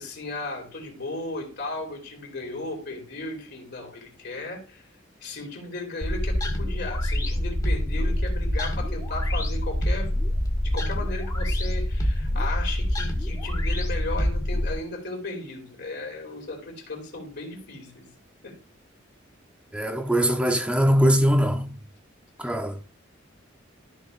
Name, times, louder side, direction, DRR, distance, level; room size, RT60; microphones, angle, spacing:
voice 1, 0.0-4.8 5.2-10.1 10.6-18.1 18.4-18.6 22.4-22.6, left 2 dB, 55° left, 2.9 m, -35 dB
sound 1, 6.0-14.7, left 1 dB, 20° left, 1.8 m, -26 dB
voice 2, 19.7-21.7 22.4-22.7, equal, 5° right, 0.9 m, -21 dB
13.5 x 6.1 x 2.5 m
head